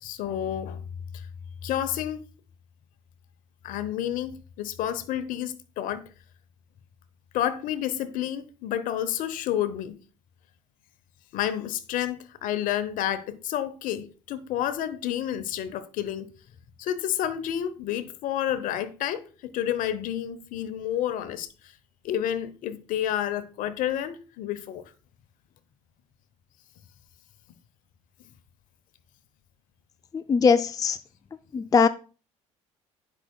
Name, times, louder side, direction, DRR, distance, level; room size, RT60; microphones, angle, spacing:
voice 1, 0.0-0.8 1.1-1.3 1.6-2.2 3.6-6.1 7.3-10.0 11.3-16.3 16.8-21.7 22.0-24.8, left 11 dB, 60° left, 0.8 m, -30 dB
voice 2, 30.1-31.0 31.5-31.9, left 5 dB, 25° left, 0.4 m, -21 dB
9.7 x 5.6 x 2.3 m
hypercardioid pair, 60°, 15 cm